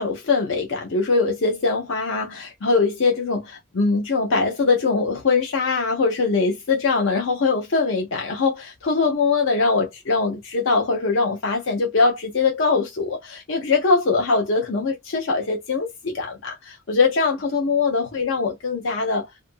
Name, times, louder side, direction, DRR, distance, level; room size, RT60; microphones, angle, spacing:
voice 1, 0.0-19.3, left 4 dB, 65° left, 0.6 m, -22 dB
2.6 x 2.5 x 2.3 m
head